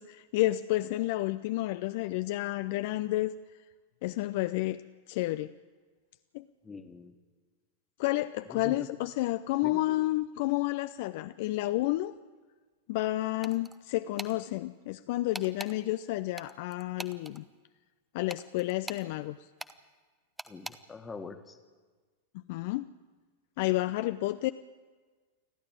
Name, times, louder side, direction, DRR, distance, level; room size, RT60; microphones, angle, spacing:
voice 1, 0.0-3.3 4.0-4.8 5.1-5.5 6.3-6.4 8.0-12.1 12.9-17.4 18.1-19.4 22.3-22.9 23.6-24.5, left 17 dB, 50° left, 12 dB, 0.5 m, -30 dB
voice 2, 6.6-7.1 8.5-8.8 9.6-9.8 20.5-21.6, left 4 dB, 15° left, 8 dB, 1.7 m, -43 dB
sound 1, 13.4-13.8 14.2-14.3 15.3-15.7 16.4-17.4 18.3-19.1 19.6-19.7 20.4-20.8, right 2 dB, 5° right, 1.0 m, -41 dB
29.0 x 11.5 x 9.0 m, 1.4 s
figure-of-eight pair, 90°, 0 cm